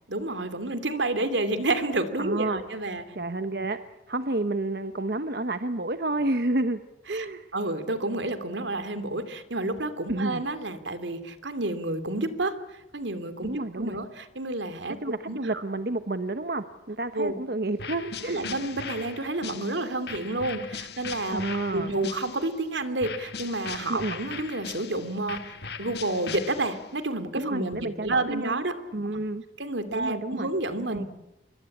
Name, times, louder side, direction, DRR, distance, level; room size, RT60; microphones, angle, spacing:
voice 1, 0.1-3.0 7.1-7.3 7.5-12.6 12.9-15.6 17.1-17.4 18.3-28.7 29.6-31.0, right 2 dB, 80° right, 10 dB, 2.7 m, -30 dB
voice 2, 2.2-2.6 3.1-3.8 4.1-6.8 7.1-7.5 10.1-10.4 13.4-14.0 15.0-18.5 21.3-21.9 23.9-24.2 27.4-28.6 28.9-29.4 29.9-30.5 30.9-31.0, right 2 dB, 55° right, 9 dB, 1.0 m, -30 dB
sound 1, 17.8-22.6 23.0-27.0, left 6 dB, 60° left, 1.6 m, -39 dB
26.5 x 23.0 x 8.6 m, 0.96 s
head